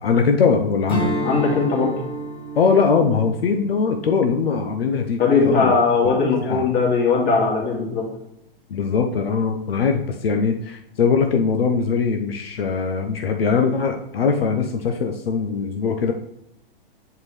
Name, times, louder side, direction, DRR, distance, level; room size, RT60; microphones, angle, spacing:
voice 1, 0.0-1.2 2.6-5.8 6.2-6.7 8.7-16.1, left 5 dB, 80° left, 4 dB, 0.7 m, -21 dB
Strum, 0.9-5.6, right 1 dB, 15° left, 1.8 m, -31 dB
voice 2, 1.2-1.9 5.2-8.1, left 4 dB, 35° left, -2 dB, 2.2 m, -19 dB
7.5 x 4.7 x 3.2 m, 0.78 s
hypercardioid pair, 115°, 29 cm